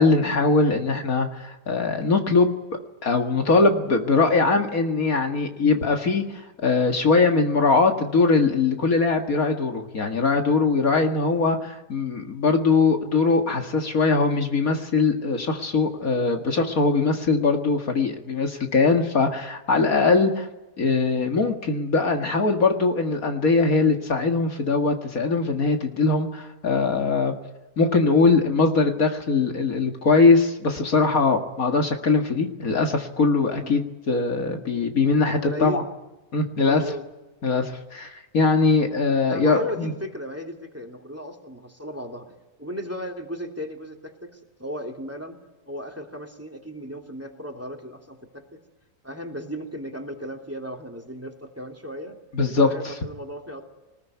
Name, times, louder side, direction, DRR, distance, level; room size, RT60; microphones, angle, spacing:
voice 1, 0.0-2.6 3.0-20.5 20.8-27.3 27.8-35.8 36.3-36.8 37.4-39.9 52.3-52.9, left 4 dB, 65° left, 4 dB, 2.4 m, -21 dB
voice 2, 35.3-35.9 36.6-37.0 39.3-42.3 42.6-45.4 45.7-48.6 49.0-52.2 52.6-53.6, equal, 10° right, 2 dB, 3.0 m, -35 dB
25.0 x 20.5 x 9.5 m, 1.1 s
omnidirectional pair, 1.6 m